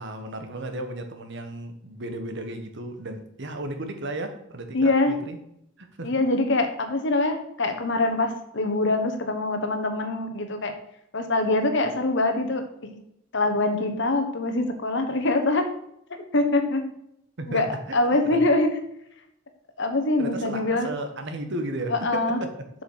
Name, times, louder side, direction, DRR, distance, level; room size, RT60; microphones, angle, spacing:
voice 1, 0.0-5.4 5.8-6.1 17.4-17.8 18.0-18.5 20.2-22.5, right 1 dB, 55° right, 7 dB, 1.1 m, -34 dB
voice 2, 4.7-5.2 6.0-10.7 11.1-12.6 13.3-15.6 16.3-16.8 17.5-17.7 17.9-18.7 19.8-20.9 21.9-22.4, left 2 dB, 60° left, 6 dB, 1.2 m, -24 dB
7.3 x 5.9 x 4.7 m, 0.76 s
head